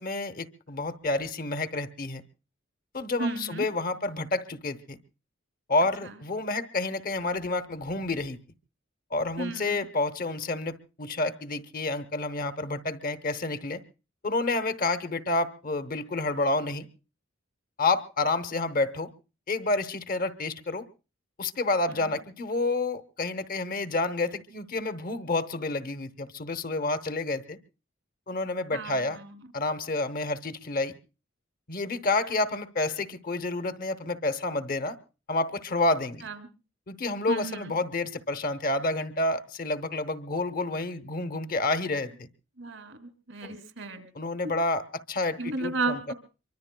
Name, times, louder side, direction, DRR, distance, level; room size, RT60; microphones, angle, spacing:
voice 1, 0.0-2.2 2.9-5.0 5.7-8.4 9.1-13.8 14.2-16.9 17.8-19.1 19.5-20.9 21.4-27.6 28.3-29.2 29.5-30.9 31.7-35.0 35.3-36.3 36.9-42.3 43.4-43.6 44.1-46.1, left 2 dB, 45° left, 11 dB, 0.9 m, -29 dB
voice 2, 3.2-3.7 9.4-9.9 28.7-29.3 36.2-36.4 37.3-37.7 42.6-44.1 45.4-46.1, right 3 dB, 80° right, 9 dB, 2.4 m, -33 dB
24.0 x 24.0 x 2.2 m, 0.33 s
head